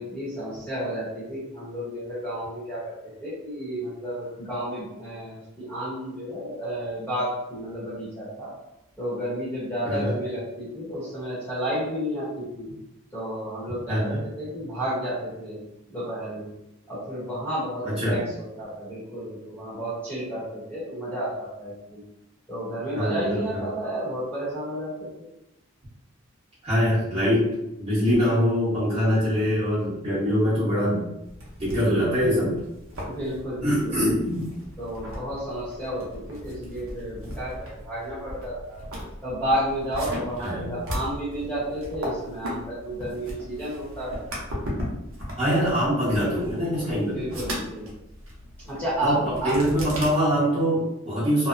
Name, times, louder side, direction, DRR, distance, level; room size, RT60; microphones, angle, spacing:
voice 1, 0.0-2.9 3.2-8.5 9.0-12.7 13.1-15.6 15.9-16.5 16.9-22.0 22.5-25.3 33.0-34.0 34.8-38.8 39.2-44.2 47.1-47.9 48.6-49.6, equal, 5° left, -10 dB, 0.9 m, -31 dB
voice 2, 13.9-14.2 17.8-18.2 22.9-23.6 26.6-27.5 27.8-31.1 31.6-32.5 33.6-34.4 40.4-40.7 45.4-47.3 49.0-51.5, equal, 25° right, -12 dB, 1.0 m, -23 dB
sound 1, 31.3-50.1, equal, 65° right, 0.7 m, -37 dB
2.7 x 2.0 x 2.5 m, 0.87 s
head